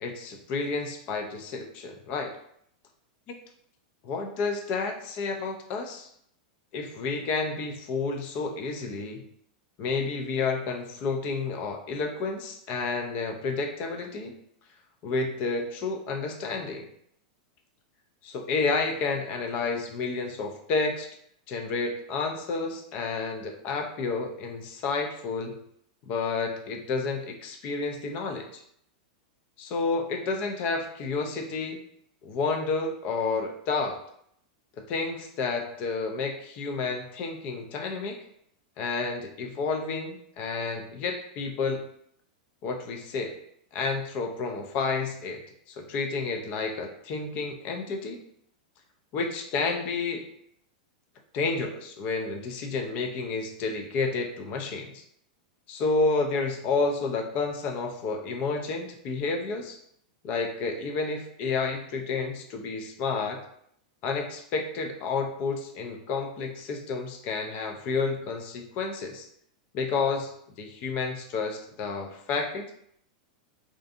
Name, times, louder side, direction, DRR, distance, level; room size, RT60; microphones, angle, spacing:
voice 1, 0.0-2.3 4.0-6.1 6.7-9.2 9.8-14.4 15.0-16.9 18.2-21.1 21.5-25.6 26.0-28.6 29.6-31.8 32.2-34.0 34.8-38.3 38.8-41.9 42.6-43.4 43.7-48.2 49.1-50.3 51.3-55.0 55.7-59.8 60.2-63.4 64.0-69.3 69.7-70.3 70.6-72.7, left 4 dB, 35° left, 4 dB, 0.4 m, -30 dB
2.5 x 2.4 x 2.5 m, 0.70 s
supercardioid pair, 150°, 4 cm